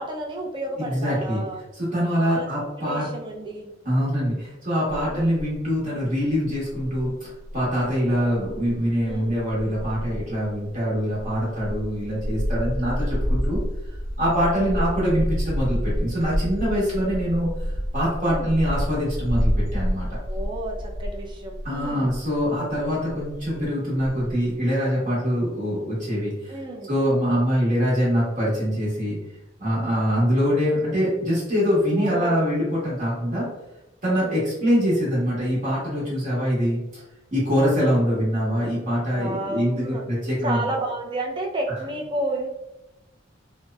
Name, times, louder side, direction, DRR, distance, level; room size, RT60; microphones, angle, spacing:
voice 1, 0.0-1.6 2.2-2.5 2.8-3.7 5.0-5.3 8.1-8.4 9.0-9.4 14.6-14.8 15.1-15.2 18.2-18.6 20.3-22.1 26.5-26.9 31.9-32.4 34.1-34.4 39.1-40.0 40.4-42.5, right 1 dB, 25° right, 0 dB, 0.4 m, -31 dB
voice 2, 0.8-1.4 1.7-3.1 3.8-13.6 14.2-17.5 17.9-20.1 21.6-26.6 26.9-29.2 29.6-33.5 34.0-37.0 37.3-40.7, equal, 40° right, -7 dB, 1.0 m, -24 dB
sound 1, 4.9-5.6 6.0-6.1 6.5-22.5 22.7-23.7 24.0-24.3, equal, 85° right, 0.6 m, -29 dB
2.9 x 2.0 x 2.2 m, 0.95 s
head